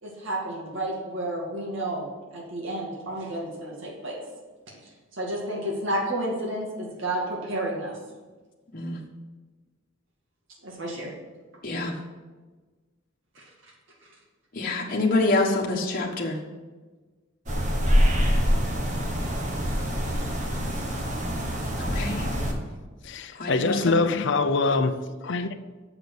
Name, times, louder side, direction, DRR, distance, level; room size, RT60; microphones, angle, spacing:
voice 1, 0.0-4.2 5.1-8.0 10.6-11.1 13.4-13.5, right 1 dB, 65° right, 2.3 m, -31 dB
voice 2, 11.6-11.9 14.5-16.4 21.8-22.3 23.3-24.0, left 2 dB, 45° left, 1.3 m, -26 dB
sound 1, 17.5-22.5, equal, 40° right, 1.4 m, -25 dB
voice 3, 23.0-25.5, left 3 dB, 60° left, 0.7 m, -24 dB
6.9 x 6.7 x 7.8 m
head